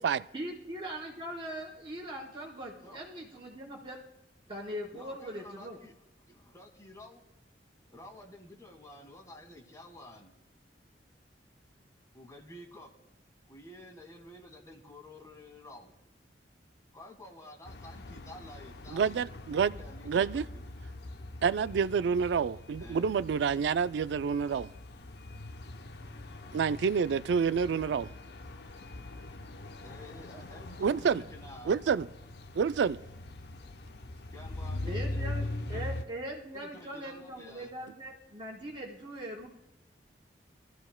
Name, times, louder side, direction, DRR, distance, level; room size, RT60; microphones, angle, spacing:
voice 1, 0.3-4.0 4.5-5.8 34.9-39.5, right 1 dB, 30° right, 4.4 m, -41 dB
voice 2, 4.9-5.9 6.3-7.2 7.9-10.3 12.1-12.9 13.5-15.9 16.9-21.0 22.8-23.1 29.8-31.8 34.3-35.8 36.5-37.7, left 1 dB, 20° left, 1.6 m, -51 dB
sound 1, 17.7-36.0, left 2 dB, 65° left, 0.7 m, -42 dB
voice 3, 18.9-19.8 20.1-20.4 21.4-24.7 26.5-28.1 30.8-31.2 31.7-32.1 32.6-33.0, right 6 dB, 75° right, 0.3 m, -28 dB
22.5 x 14.5 x 2.2 m
head